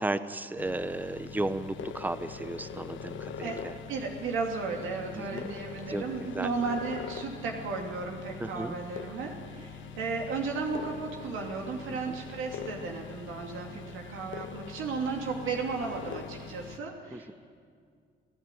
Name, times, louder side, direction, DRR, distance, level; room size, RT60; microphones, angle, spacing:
voice 1, 0.0-3.7 5.1-5.5 5.9-6.5 8.4-8.7 11.9-12.0 17.1-17.3, right 2 dB, 10° right, 12 dB, 0.9 m, -34 dB
sound 1, 0.6-16.8, left 6 dB, 75° left, 1.3 m, -43 dB
voice 2, 3.9-17.3, right 4 dB, 85° right, 1 dB, 2.7 m, -34 dB
27.0 x 15.5 x 9.2 m, 2.2 s
cardioid pair, 90°, 20 cm